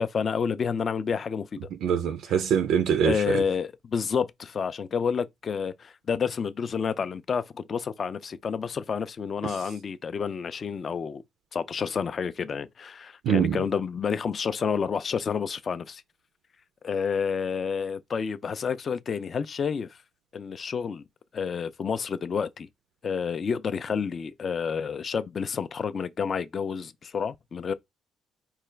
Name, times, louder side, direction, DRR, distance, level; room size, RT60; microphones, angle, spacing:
voice 1, 0.0-1.6 2.3-2.4 3.0-11.2 11.5-16.0 16.8-19.9 20.3-21.0 21.3-22.7 23.0-27.7, left 6 dB, 35° left, 0.3 m, -29 dB
voice 2, 1.8-3.1 13.3-13.6, right 8 dB, 75° right, 0.4 m, -23 dB
4.7 x 2.3 x 3.2 m
cardioid pair, 150°, 0 cm